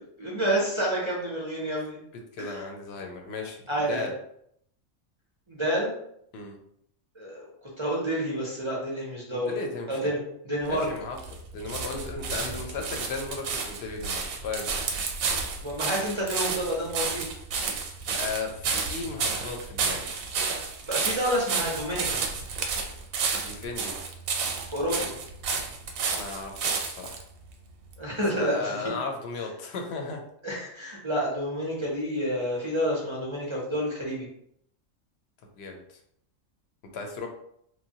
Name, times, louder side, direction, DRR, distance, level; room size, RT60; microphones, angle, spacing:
voice 1, 0.2-2.0 2.4-2.6 3.7-4.1 5.5-5.9 7.1-7.5 7.8-9.6 9.9-10.2 10.4-10.9 15.6-17.2 20.9-22.2 24.7-25.1 28.0-28.8 30.4-34.3, equal, 35° right, -4 dB, 0.4 m, -29 dB
voice 2, 2.3-4.2 6.3-6.6 9.3-10.1 10.7-11.2 11.5-14.7 18.1-20.1 23.4-23.9 26.1-27.2 28.1-30.2 35.5-36.0 36.9-37.3, left 4 dB, 65° left, 3 dB, 0.7 m, -36 dB
sound 1, 10.7-27.2 27.9-28.0, right 5 dB, 90° right, 1.0 m, -31 dB
3.1 x 2.1 x 2.7 m, 0.70 s
omnidirectional pair, 1.4 m